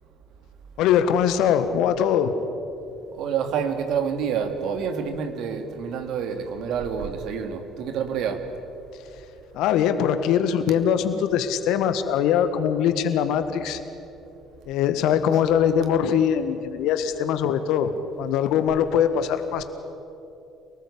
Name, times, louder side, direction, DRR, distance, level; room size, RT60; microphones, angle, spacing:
voice 1, 0.8-2.3 9.5-13.8 14.7-17.9 18.2-19.6, left 8 dB, 65° left, 10 dB, 1.7 m, -22 dB
voice 2, 3.2-8.4, right 7 dB, 60° right, 6 dB, 2.6 m, -28 dB
28.0 x 19.0 x 8.5 m, 2.9 s
hypercardioid pair, 55°, 0 cm